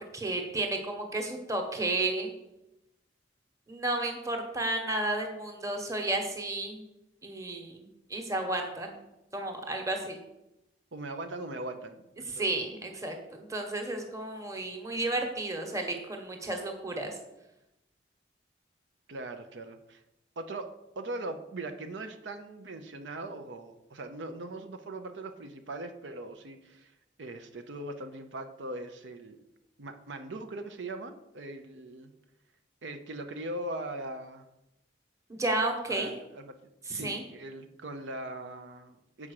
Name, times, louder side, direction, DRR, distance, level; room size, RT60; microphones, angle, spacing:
voice 1, 0.1-2.3 3.7-6.9 7.2-9.0 9.3-10.2 12.3-17.2 35.3-36.1 36.9-37.2, right 2 dB, 15° right, 3 dB, 1.1 m, -32 dB
voice 2, 10.9-12.6 19.1-20.0 20.4-26.9 27.2-29.4 29.8-32.1 32.8-34.5 35.9-36.6 36.9-39.3, right 2 dB, 85° right, 7 dB, 0.7 m, -40 dB
7.2 x 4.9 x 6.5 m, 0.91 s
head